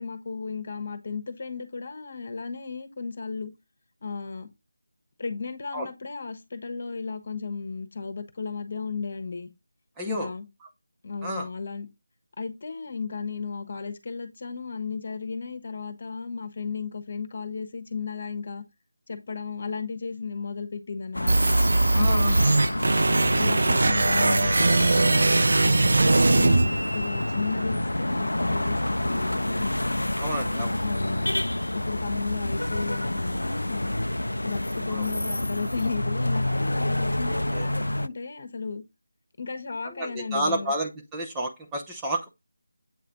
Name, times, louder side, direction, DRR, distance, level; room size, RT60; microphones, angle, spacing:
voice 1, 0.0-3.5 4.0-4.5 5.2-9.5 10.0-10.5 11.0-11.9 12.4-18.6 19.1-21.5 21.9-22.7 23.4-25.9 26.2-29.8 30.8-31.3 31.7-34.0 34.4-38.8 39.4-40.7, left 5 dB, 45° left, 1.2 m, -34 dB
voice 2, 10.0-10.3 11.2-11.5 21.9-22.3 30.2-30.8 34.9-35.0 37.5-37.7 40.0-42.3, right 1 dB, 10° right, 0.8 m, -30 dB
sound 1, 21.1-38.1, left 1 dB, 85° left, 0.4 m, -28 dB
sound 2, 21.3-27.3, right 2 dB, 60° right, 0.4 m, -21 dB
8.1 x 3.3 x 4.0 m
figure-of-eight pair, 165°, 0 cm